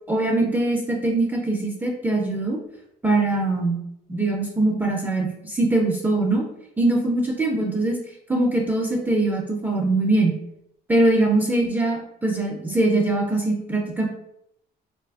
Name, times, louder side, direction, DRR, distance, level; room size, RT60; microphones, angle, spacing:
voice 1, 0.1-2.6 3.0-3.8 4.1-6.4 6.8-8.0 8.3-10.3 10.9-14.1, right 2 dB, 10° right, -1 dB, 0.3 m, -22 dB
2.7 x 2.4 x 2.3 m, 0.76 s
cardioid pair, 110°, 17 cm